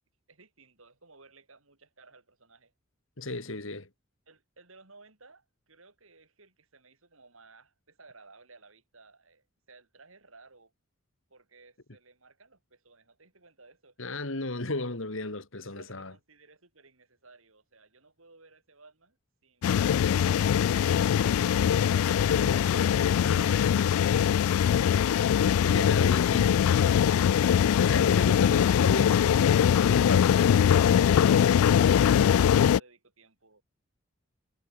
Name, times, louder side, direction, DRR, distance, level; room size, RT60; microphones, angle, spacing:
voice 1, 0.3-2.7 4.3-10.7 11.3-14.0 15.6-19.2 19.4-21.9 26.1-26.5 31.4-33.6, right 3 dB, 75° right, 5.9 m, -57 dB
voice 2, 3.2-3.9 14.0-16.1 22.3-22.9 23.2-24.0 25.6-26.5 27.8-30.5, left 2 dB, 65° left, 2.4 m, -35 dB
sound 1, 19.6-32.8, left 8 dB, 85° left, 0.3 m, -22 dB
head